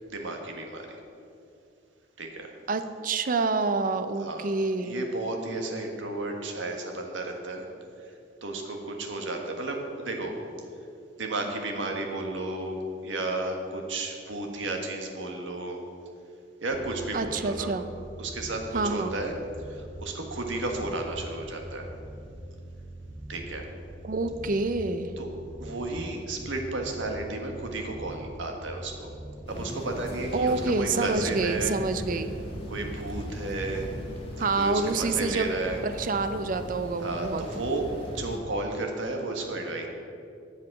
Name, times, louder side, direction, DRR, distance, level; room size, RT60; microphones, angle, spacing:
voice 1, 0.1-1.0 2.2-2.5 4.2-4.5 4.8-7.6 8.0-8.1 8.4-10.4 11.2-15.8 16.6-17.7 18.2-19.3 19.6-21.9 23.3-23.6 25.2-25.3 25.6-29.1 29.5-31.8 32.7-33.9 34.4-35.8 37.0-39.9, right 2 dB, 90° right, 2 dB, 1.5 m, -33 dB
voice 2, 2.7-5.0 17.1-17.9 18.7-19.2 24.0-25.1 30.3-32.3 34.4-35.5 35.8-37.4, right 3 dB, 45° right, 10 dB, 0.5 m, -27 dB
sound 1, 16.7-34.0, right 1 dB, 65° right, 1.5 m, -43 dB
sound 2, 29.5-38.4, left 1 dB, 30° left, 2.1 m, -39 dB
10.5 x 7.4 x 6.0 m, 2.5 s
head